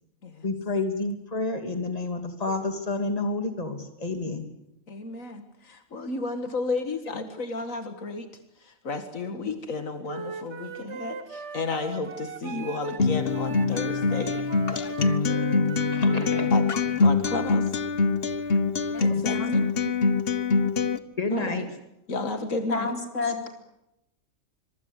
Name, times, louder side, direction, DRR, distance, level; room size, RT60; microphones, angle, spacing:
voice 1, 0.4-4.4 15.9-16.5 19.1-19.2 21.2-21.7, left 3 dB, 30° left, 6 dB, 2.9 m, -29 dB
voice 2, 4.9-8.3 8.6-14.5 16.5-16.6 17.0-17.7 19.0-19.7 21.3-21.7 22.1-22.9, left 3 dB, 85° left, 8 dB, 2.3 m, -32 dB
Wind instrument woodwind instrument, 10.1-13.0 13.3-16.5, right 5 dB, 60° right, 1.8 m, -39 dB
Acoustic guitar, 13.0-21.0, left 4 dB, 50° left, 1.3 m, -24 dB
voice 3, 18.9-19.5 22.7-23.5, left 4 dB, 70° left, 4 dB, 4.3 m, -31 dB
26.0 x 23.0 x 8.3 m, 0.83 s
omnidirectional pair, 1.4 m